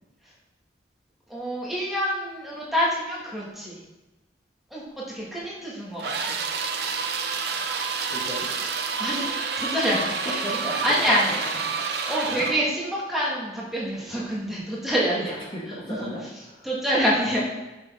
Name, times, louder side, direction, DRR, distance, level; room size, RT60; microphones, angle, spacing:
voice 1, 1.3-3.8 4.7-4.8 5.1-6.4 9.0-10.4 10.7-15.3 15.9-16.1 16.6-17.4, equal, ahead, -7 dB, 1.7 m, -27 dB
sound 1, 6.0-12.7, right 5 dB, 65° right, 0.7 m, -29 dB
voice 2, 8.1-8.5 9.9-10.8 11.7-12.5 15.2-16.7 17.3-17.4, equal, 30° left, -5 dB, 1.5 m, -36 dB
6.8 x 6.3 x 3.6 m, 1.1 s
head